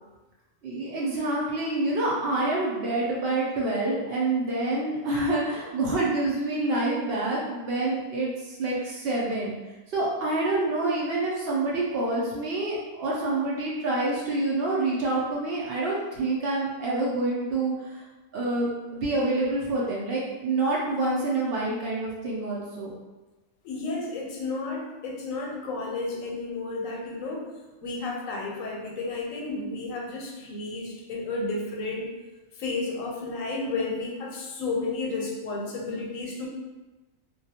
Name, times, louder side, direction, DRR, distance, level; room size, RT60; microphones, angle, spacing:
voice 1, 0.6-9.5 9.9-18.0 18.3-22.9, right 2 dB, 65° right, -4 dB, 0.6 m, -27 dB
voice 2, 23.6-27.5 27.8-32.1 32.6-36.5, left 3 dB, 90° left, -1 dB, 1.0 m, -32 dB
2.3 x 2.1 x 2.7 m, 1.1 s
omnidirectional pair, 1.4 m